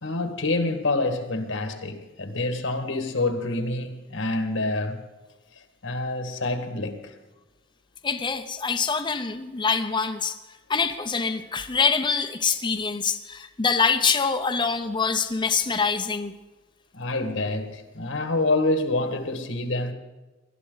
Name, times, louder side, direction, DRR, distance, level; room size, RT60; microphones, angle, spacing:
voice 1, 0.0-5.0 5.8-7.1 16.9-19.9, left 2 dB, 80° left, 1.8 m, -27 dB
voice 2, 8.0-10.4 10.7-16.3, left 5 dB, 25° left, 0.6 m, -25 dB
19.5 x 12.0 x 3.9 m
head